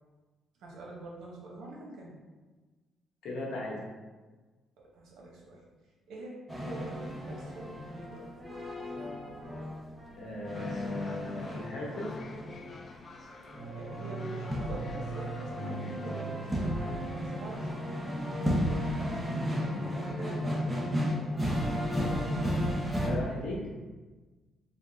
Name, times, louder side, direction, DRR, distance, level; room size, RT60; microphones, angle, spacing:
voice 1, 0.6-2.2 4.9-5.6 6.1-6.3 6.6-8.3 13.7-18.2 19.5-22.4, right 2 dB, 80° right, -2 dB, 0.9 m, -45 dB
voice 2, 3.2-3.8 10.2-12.1 19.0-19.9 23.0-23.6, left 2 dB, 80° left, -3 dB, 0.9 m, -37 dB
sound 1, 6.5-23.1, equal, 10° right, 0.7 m, -34 dB
sound 2, 10.5-16.3, left 3 dB, 45° left, 0.3 m, -51 dB
3.5 x 2.2 x 3.8 m, 1.3 s
cardioid pair, 90°, 0 cm